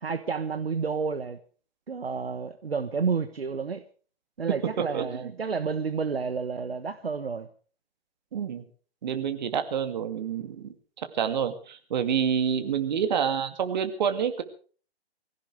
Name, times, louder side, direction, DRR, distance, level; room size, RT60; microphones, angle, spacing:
voice 1, 0.0-1.4 1.9-3.8 4.4-7.5, right 5 dB, 65° right, 1.2 m, -30 dB
voice 2, 4.9-5.3 8.3-8.6 9.0-14.4, right 8 dB, 45° right, 2.3 m, -28 dB
23.5 x 16.0 x 3.4 m
figure-of-eight pair, 130°, 32 cm